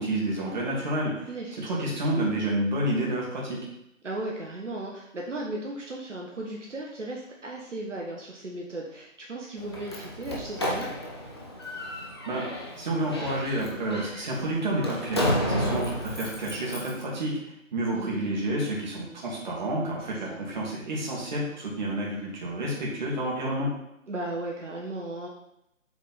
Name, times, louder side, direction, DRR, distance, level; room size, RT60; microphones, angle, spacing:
voice 1, 0.0-1.3 1.6-3.6 12.3-12.5 12.8-17.3 17.7-23.7, right 1 dB, 35° right, -3 dB, 1.9 m, -29 dB
voice 2, 1.2-1.7 4.0-10.9 15.6-15.8 17.9-18.3 20.1-20.4 24.1-25.3, right 2 dB, 60° right, -1 dB, 1.2 m, -36 dB
Slam, 9.6-17.0, equal, 20° left, 0.7 m, -32 dB
7.3 x 3.9 x 4.1 m, 0.82 s
figure-of-eight pair, 145°, 41 cm